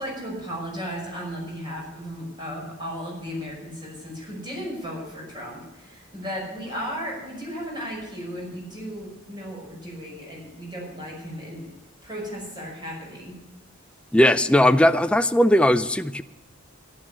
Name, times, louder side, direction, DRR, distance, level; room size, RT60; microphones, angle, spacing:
voice 1, 0.0-11.7 12.0-13.4, equal, 20° right, -2 dB, 5.7 m, -35 dB
voice 2, 14.1-16.2, left 1 dB, 5° left, 9 dB, 0.4 m, -18 dB
12.0 x 11.0 x 6.6 m, 1.0 s
head